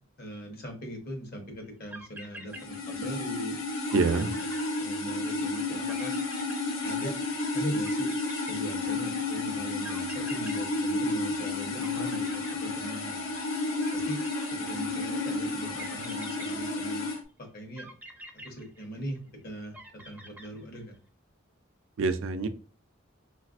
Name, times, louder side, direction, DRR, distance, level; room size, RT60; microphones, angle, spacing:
voice 1, 0.2-3.6 3.9-4.5 4.8-6.1 6.8-7.2 7.5-8.1 8.5-13.2 13.9-14.2 14.5-17.1 17.5-17.9 18.4-19.2 19.4-19.8 20.1-20.9, equal, 50° left, 3 dB, 0.9 m, -40 dB
sound 1, 1.6-1.7 1.9-3.3 3.6-3.7 3.9-5.3 5.9-7.3 7.8-9.2 9.8-11.5 11.8-13.2 13.8-15.0 15.8-17.2 17.8-19.3 19.7-21.0, right 1 dB, 10° right, 0.5 m, -47 dB
sound 2, 2.5-17.2, left 2 dB, 85° left, 0.8 m, -31 dB
voice 2, 3.9-4.3 22.0-22.5, right 4 dB, 75° right, 9 dB, 0.4 m, -26 dB
3.9 x 2.4 x 2.4 m, 0.38 s
head